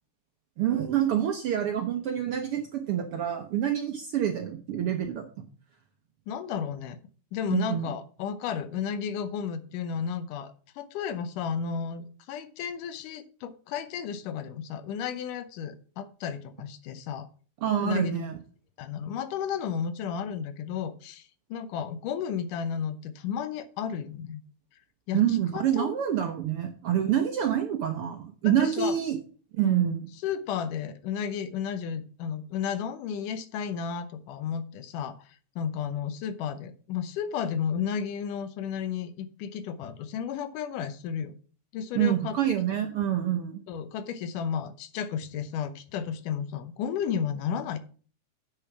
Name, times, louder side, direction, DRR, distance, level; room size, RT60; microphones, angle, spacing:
voice 1, 0.6-5.3 7.5-7.9 17.6-18.4 25.1-29.2 29.6-30.0 41.9-43.5, right 10 dB, 70° right, 5 dB, 1.4 m, -27 dB
voice 2, 6.3-7.0 7.3-17.3 17.8-18.2 18.8-24.4 25.1-25.9 28.4-29.0 29.6-29.9 30.2-41.3 41.7-42.6 43.7-47.8, left 7 dB, 90° left, 12 dB, 2.4 m, -33 dB
8.4 x 6.7 x 5.9 m, 0.41 s
omnidirectional pair, 3.6 m